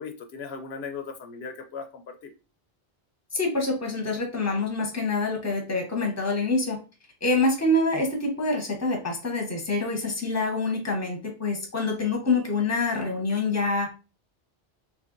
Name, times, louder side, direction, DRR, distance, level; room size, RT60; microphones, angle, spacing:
voice 1, 0.0-2.3, left 5 dB, 85° left, 6 dB, 0.9 m, -38 dB
voice 2, 3.3-6.8 7.2-13.9, left 2 dB, 15° left, 2 dB, 0.8 m, -26 dB
3.1 x 2.5 x 3.7 m, 0.32 s
omnidirectional pair, 1.0 m